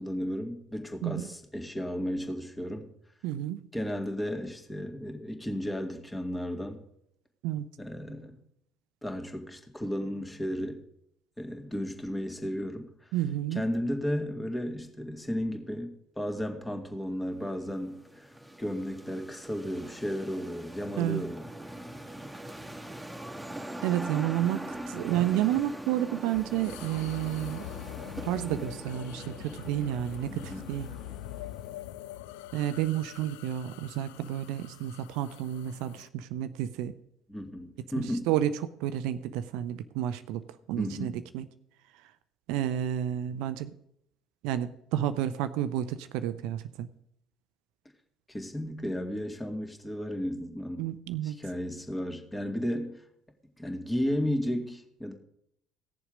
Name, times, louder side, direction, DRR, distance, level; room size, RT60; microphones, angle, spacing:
voice 1, 0.0-2.9 3.7-6.8 7.8-8.4 9.0-10.8 11.4-13.1 13.5-21.5 30.3-30.7 37.3-38.3 40.7-41.2 48.3-50.9 51.2-53.0 53.6-55.1, equal, 10° left, 4 dB, 2.3 m, -34 dB
voice 2, 3.2-3.6 7.4-7.7 13.1-13.6 21.0-21.2 23.8-27.6 28.2-30.9 32.5-36.9 38.0-38.5 38.8-41.5 42.5-43.7 44.4-46.9 50.8-51.4, right 12 dB, 65° right, 13 dB, 0.5 m, -31 dB
sound 1, 17.3-31.8, right 1 dB, 10° right, 1.7 m, -42 dB
sound 2, 26.3-36.1, left 14 dB, 70° left, 0.4 m, -44 dB
17.5 x 7.0 x 5.1 m, 0.72 s
figure-of-eight pair, 55°, 0 cm